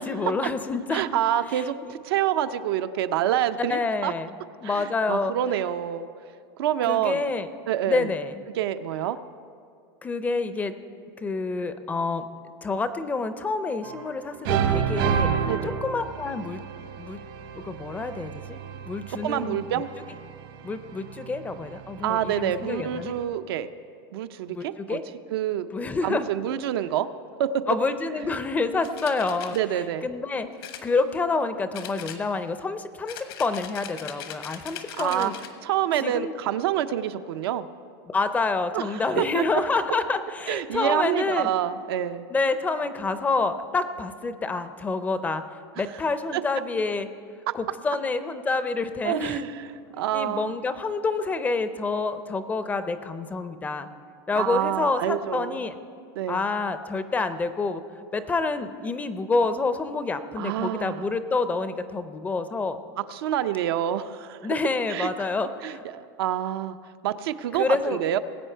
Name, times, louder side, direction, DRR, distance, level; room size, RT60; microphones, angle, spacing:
voice 1, 0.0-1.0 1.5-2.0 3.6-4.3 4.6-5.3 6.8-7.5 7.9-8.4 10.0-10.7 11.2-12.3 12.6-15.3 15.6-16.6 16.9-17.2 17.5-19.8 20.6-23.1 24.5-25.0 25.7-26.3 27.7-29.6 30.0-30.5 30.8-35.4 36.0-36.3 38.1-41.5 42.3-45.4 45.8-47.1 47.5-49.4 50.1-53.9 54.3-55.8 56.3-57.8 58.1-62.8 64.4-65.8 67.5-68.0, left 3 dB, 10° left, 11 dB, 0.4 m, -28 dB
voice 2, 0.9-4.1 4.6-6.1 6.6-7.2 7.7-8.1 8.5-9.2 15.5-15.7 19.2-19.9 22.0-23.7 24.1-25.0 25.3-25.7 26.0-27.1 27.4-27.6 29.5-30.1 35.0-35.3 35.6-37.6 38.7-39.4 40.5-42.3 46.3-46.4 49.0-49.5 49.9-50.5 54.4-55.6 56.2-56.4 60.4-61.1 63.1-64.5 64.9-65.1 65.6-66.8 67.0-68.2, right 11 dB, 80° right, 10 dB, 0.6 m, -27 dB
sound 1, 13.8-14.2 14.5-23.2, right 7 dB, 60° right, 1.0 m, -31 dB
sound 2, 28.8-29.6 30.6-31.4 31.7-32.6 33.1-35.6, left 10 dB, 75° left, 1.1 m, -40 dB
19.5 x 8.3 x 4.5 m, 2.3 s
supercardioid pair, 155°, 13 cm